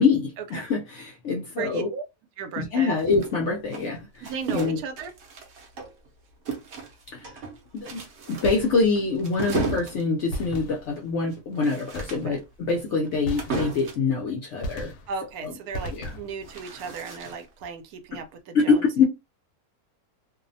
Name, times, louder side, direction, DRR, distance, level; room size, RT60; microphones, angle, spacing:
voice 1, 0.0-1.9 2.6-4.8 7.1-7.3 7.7-8.0 8.3-14.9 15.4-15.5 15.9-16.2 18.1-18.2 18.5-19.0, left 4 dB, 65° left, 0.8 m, -25 dB
voice 2, 1.6-2.0 2.4-2.9 4.2-5.1 12.2-12.4 15.1-18.9, right 5 dB, 80° right, 1.0 m, -36 dB
sound 1, 3.0-6.1 6.5-14.1 16.0-17.6, right 4 dB, 60° right, 0.8 m, -35 dB
sound 2, 8.4-9.2 10.3-11.2 11.9-12.6 13.3-14.1 14.6-15.3 15.7-16.5, equal, 85° left, 1.1 m, -36 dB
2.7 x 2.0 x 2.6 m
omnidirectional pair, 1.6 m